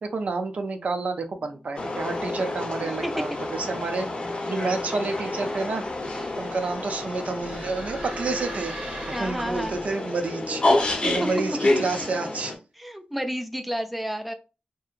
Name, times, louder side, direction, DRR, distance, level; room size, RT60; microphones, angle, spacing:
voice 1, 0.0-8.7 9.1-12.6, right 3 dB, 65° right, 0.4 m, -30 dB
sound 1, 1.8-12.6, left 2 dB, 45° left, 0.6 m, -29 dB
voice 2, 2.8-3.4 6.1-6.4 9.1-9.8 11.0-11.3 12.8-14.3, equal, ahead, 0.3 m, -31 dB
sound 2, 5.5-9.9, right 2 dB, 85° right, 1.0 m, -40 dB
2.7 x 2.7 x 2.4 m
wide cardioid pair, 110°, 3 cm